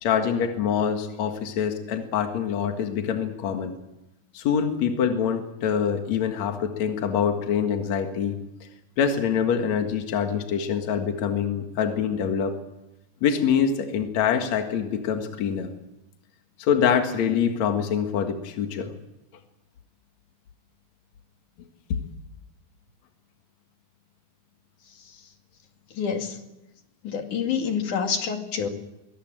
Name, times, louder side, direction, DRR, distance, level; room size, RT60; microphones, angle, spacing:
voice 1, 0.0-3.7 4.3-8.3 9.0-12.6 13.2-15.7 16.6-18.9, left 7 dB, 65° left, 5 dB, 2.9 m, -25 dB
voice 2, 25.9-26.4 27.0-28.7, left 7 dB, 85° left, 4 dB, 3.8 m, -28 dB
23.0 x 20.5 x 8.9 m, 0.92 s
omnidirectional pair, 3.4 m